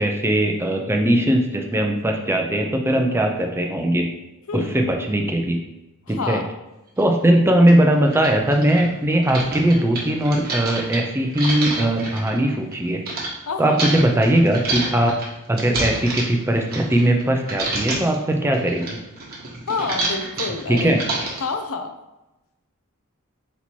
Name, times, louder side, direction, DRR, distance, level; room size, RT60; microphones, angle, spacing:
voice 1, 0.0-4.1 4.5-5.6 6.1-6.4 7.0-13.0 13.6-15.1 15.5-19.0 20.7-21.0, right 1 dB, 10° right, 3 dB, 0.5 m, -19 dB
voice 2, 4.5-4.8 6.1-6.5 13.5-13.9 19.7-21.1 21.4-21.9, left 4 dB, 70° left, 7 dB, 0.5 m, -28 dB
sound 1, 7.0-7.1 7.7-7.8 8.1-13.3 13.8-17.2 17.5-18.2 18.5-21.5, right 2 dB, 45° right, 1.2 m, -28 dB
4.1 x 2.8 x 4.4 m, 1.0 s
head